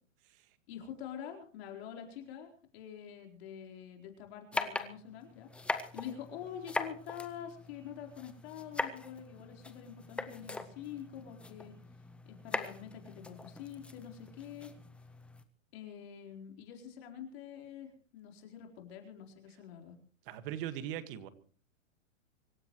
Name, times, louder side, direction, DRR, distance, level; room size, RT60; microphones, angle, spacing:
voice 1, 0.7-11.7 12.3-14.8 15.7-20.0, left 9 dB, 50° left, 3 dB, 4.2 m, -46 dB
sound 1, 4.5-15.4, left 2 dB, 5° left, 0.6 m, -41 dB
voice 2, 20.3-21.3, right 11 dB, 45° right, 11 dB, 1.9 m, -40 dB
25.0 x 15.0 x 3.2 m, 0.42 s
hypercardioid pair, 140°, 39 cm